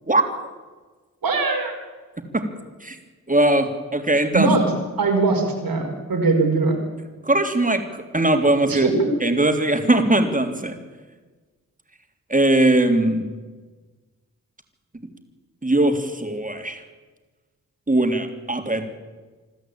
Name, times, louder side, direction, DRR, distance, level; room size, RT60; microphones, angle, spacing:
voice 1, 1.2-1.7 4.3-4.7 5.0-6.8 8.7-9.1, right 3 dB, 80° right, 2 dB, 5.0 m, -21 dB
voice 2, 3.3-4.5 7.2-8.9 9.2-10.8 12.3-13.2 15.6-16.8 17.9-18.9, right 1 dB, 25° right, 5 dB, 3.5 m, -20 dB
26.0 x 13.0 x 9.0 m, 1.3 s
cardioid pair, 50°, 35 cm